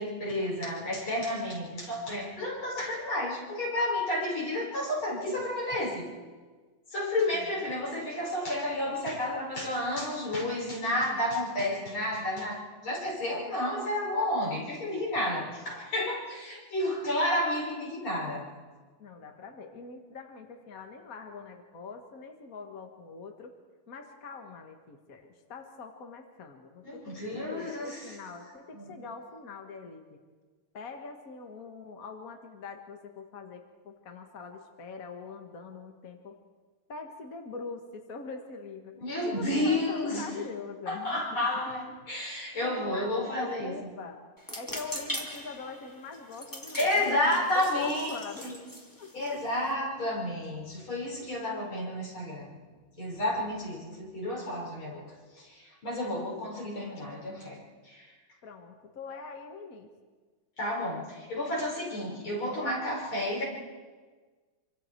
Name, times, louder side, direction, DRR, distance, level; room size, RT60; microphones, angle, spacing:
voice 1, 0.0-6.1 6.9-18.5 26.8-28.2 28.7-29.0 39.0-40.2 40.9-43.7 46.8-48.6 49.1-52.6 53.0-58.1 60.6-63.4, left 1 dB, 80° left, -3 dB, 5.9 m, -31 dB
voice 2, 19.0-23.6 23.9-30.2 30.7-36.4 36.9-39.0 39.3-41.9 42.6-44.2 44.5-47.2 47.6-48.5 49.0-49.4 58.4-59.9, left 4 dB, 45° left, 4 dB, 1.8 m, -43 dB
sound 1, 44.4-49.7, equal, 10° left, 2.5 m, -41 dB
26.5 x 25.0 x 4.6 m, 1.4 s
omnidirectional pair, 2.2 m